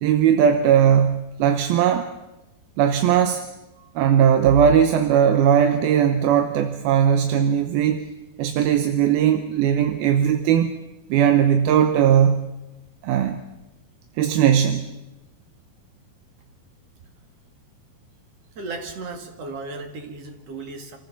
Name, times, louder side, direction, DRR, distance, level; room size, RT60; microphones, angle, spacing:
voice 1, 0.0-2.1 2.8-3.5 4.0-8.1 8.4-10.7 11.1-12.5 13.0-13.4 14.2-14.9, right 8 dB, 80° right, 7 dB, 2.7 m, -18 dB
voice 2, 18.6-21.0, right 3 dB, 50° right, 5 dB, 2.5 m, -35 dB
27.0 x 14.5 x 7.1 m, 1.0 s
omnidirectional pair, 4.5 m